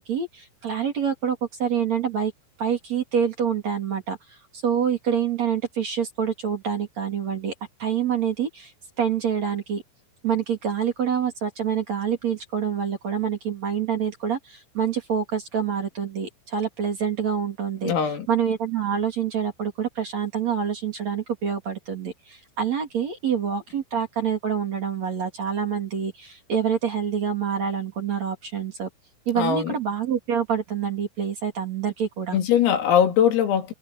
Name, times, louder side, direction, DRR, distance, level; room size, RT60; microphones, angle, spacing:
voice 1, 0.0-2.3 2.6-4.2 4.5-7.5 7.8-8.7 9.0-9.8 10.2-17.9 18.3-28.9 29.3-32.4, right 8 dB, 40° right, 3.4 m, -26 dB
voice 2, 17.8-18.3 29.4-29.7 32.3-33.7, left 9 dB, 85° left, 5.9 m, -21 dB
omnidirectional pair, 5.9 m